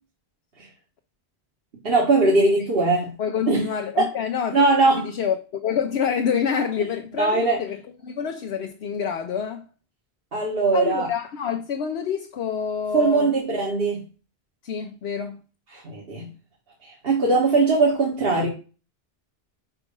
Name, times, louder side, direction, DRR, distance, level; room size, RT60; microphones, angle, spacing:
voice 1, 1.8-3.1 3.5-3.7 4.0-4.1 4.5-5.1 7.2-7.6 10.3-11.1 12.9-14.0 15.7-16.3 16.8-18.5, right 3 dB, 65° right, 1.6 m, -20 dB
voice 2, 3.2-4.6 5.0-9.7 10.7-13.3 14.6-15.4, left 7 dB, 80° left, 1.0 m, -27 dB
4.9 x 4.5 x 5.3 m
omnidirectional pair, 1.1 m